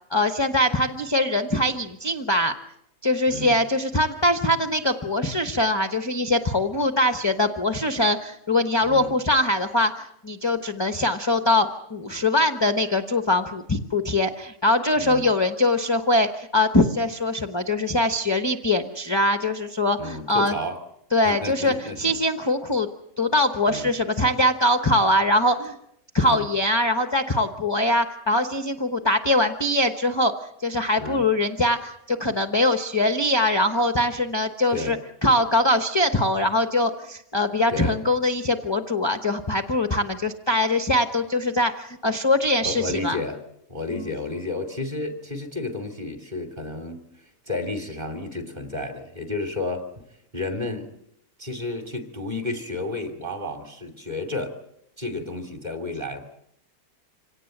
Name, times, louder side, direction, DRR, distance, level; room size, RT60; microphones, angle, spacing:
voice 1, 0.0-2.5 3.0-20.5 21.1-22.9 23.2-25.8 26.1-30.3 30.6-35.0 35.2-43.2 44.0-44.1, left 1 dB, 20° left, 8 dB, 1.0 m, -22 dB
voice 2, 8.8-9.1 15.0-15.3 20.0-20.8 21.2-22.1 23.7-23.9 26.2-26.5 31.0-31.2 34.7-34.9 37.7-38.0 42.6-43.4 43.7-47.0 47.5-49.8 50.3-50.9 51.4-54.5 55.0-56.3, left 2 dB, 25° right, 6 dB, 2.9 m, -31 dB
26.0 x 18.0 x 7.9 m, 0.78 s
omnidirectional pair, 1.6 m